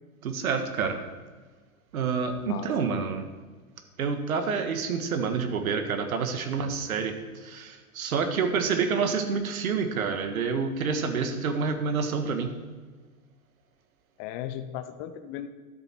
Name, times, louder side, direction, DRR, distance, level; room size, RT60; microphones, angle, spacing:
voice 1, 0.2-1.0 1.9-3.2 4.0-7.1 7.4-12.5, right 5 dB, 70° right, 7 dB, 1.5 m, -28 dB
voice 2, 2.4-3.0 14.2-15.5, left 11 dB, 25° left, 10 dB, 0.4 m, -37 dB
12.5 x 7.1 x 4.5 m, 1.4 s
hypercardioid pair, 115°, 44 cm